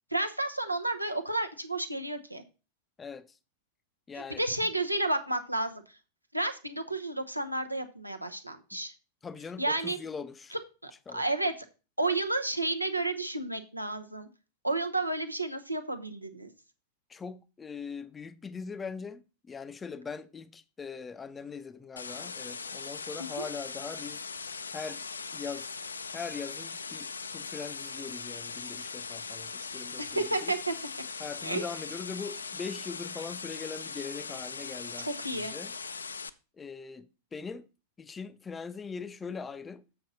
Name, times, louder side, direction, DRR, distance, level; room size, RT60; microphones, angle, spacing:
voice 1, 0.1-2.4 4.4-5.8 6.3-8.9 9.6-10.0 10.8-11.5 12.0-14.3 14.6-16.5 23.4-23.5 30.0-30.7 31.4-31.6 35.0-35.5, right 2 dB, 85° right, 0.8 m, -31 dB
voice 2, 3.0-3.4 4.1-4.7 8.7-8.8 9.2-10.6 11.1-11.2 17.1-24.2 24.7-25.0 25.3-25.7 26.1-30.5 31.2-35.7 36.6-37.7 38.0-39.9, left 5 dB, 15° left, 0.5 m, -41 dB
sound 1, 22.0-36.3, left 5 dB, 75° left, 0.4 m, -40 dB
7.7 x 6.0 x 4.0 m
figure-of-eight pair, 90°, 0 cm